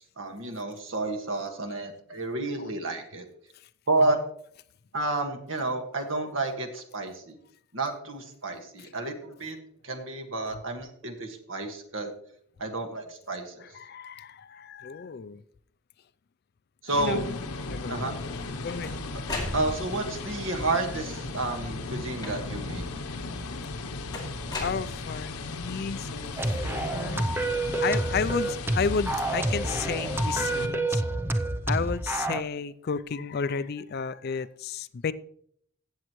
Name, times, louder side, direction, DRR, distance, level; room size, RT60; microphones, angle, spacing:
voice 1, 0.0-3.2 3.9-4.2 4.9-7.4 7.7-9.6 9.8-12.1 12.6-13.6 16.8-17.2 17.9-18.1 19.5-22.8, right 2 dB, 60° right, 4 dB, 1.6 m, -30 dB
voice 2, 13.6-15.4 16.9-17.4 17.7-18.9 24.6-31.0 31.7-35.1, left 6 dB, 45° left, 15 dB, 0.3 m, -33 dB
sound 1, 16.9-30.7, left 3 dB, 85° left, 0.9 m, -36 dB
sound 2, 18.3-20.1 21.0-21.5 22.2-22.8 24.1-25.4, left 2 dB, 20° left, 2.5 m, -37 dB
sound 3, 26.4-32.4, right 2 dB, 10° right, 0.5 m, -28 dB
16.0 x 7.4 x 3.1 m, 0.65 s
head